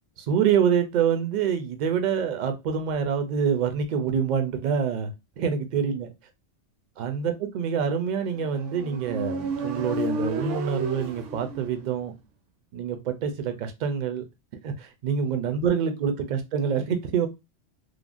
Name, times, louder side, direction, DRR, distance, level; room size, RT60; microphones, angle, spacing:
voice 1, 0.2-6.1 7.0-12.1 12.7-14.2 14.6-17.3, right 7 dB, 60° right, 0.5 m, -26 dB
Motorcycle, 8.3-12.0, right 2 dB, 80° right, 0.9 m, -32 dB
3.2 x 2.1 x 2.4 m
omnidirectional pair, 1.2 m